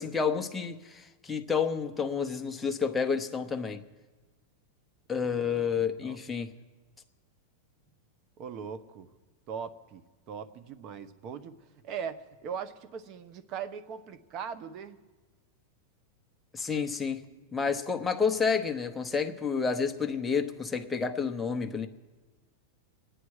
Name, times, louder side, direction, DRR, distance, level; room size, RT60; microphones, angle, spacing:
voice 1, 0.0-3.8 5.1-6.5 16.5-17.2 17.5-21.9, left 6 dB, 10° left, 5 dB, 1.0 m, -30 dB
voice 2, 5.2-6.2 8.4-9.1 9.5-11.6 11.8-15.0, right 7 dB, 40° right, 14 dB, 1.0 m, -40 dB
26.0 x 9.8 x 4.8 m, 1.3 s
supercardioid pair, 150°, 0 cm